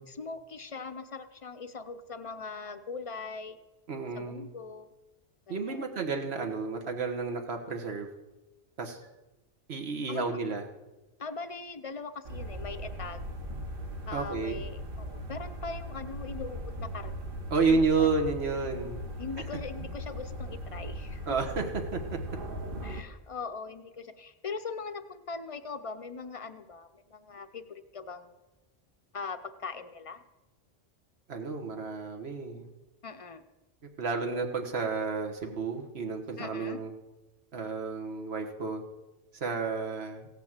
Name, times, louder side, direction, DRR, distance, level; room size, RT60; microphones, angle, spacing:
voice 1, 0.0-3.6 4.1-4.9 5.5-5.8 10.1-10.2 11.2-13.2 14.1-17.2 17.7-18.1 19.2-21.3 22.8-28.4 29.1-30.2 33.0-33.4 36.4-36.8, left 4 dB, 40° left, 9 dB, 0.6 m, -41 dB
voice 2, 3.9-4.5 5.5-8.1 8.8-9.0 9.7-10.6 14.1-14.6 17.5-19.0 21.3-22.2 31.3-32.7 34.0-36.9 37.5-38.8 39.4-40.3, right 4 dB, 80° right, 3 dB, 1.6 m, -31 dB
sound 1, 12.3-23.0, equal, 60° right, 1.2 m, -39 dB
16.5 x 5.8 x 7.3 m, 1.1 s
omnidirectional pair, 1.1 m